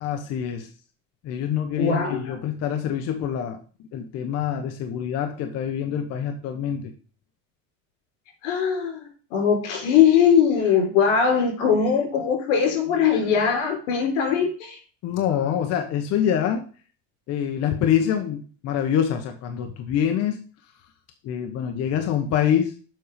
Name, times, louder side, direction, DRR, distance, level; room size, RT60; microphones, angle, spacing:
voice 1, 0.0-0.7 1.2-3.6 3.9-6.9 15.0-16.6 17.3-20.4 21.2-22.7, left 9 dB, 45° left, 5 dB, 1.1 m, -25 dB
voice 2, 1.8-2.4 8.4-14.8, left 7 dB, 90° left, 2 dB, 4.3 m, -21 dB
7.6 x 5.5 x 5.1 m, 0.39 s
cardioid pair, 150°, 36 cm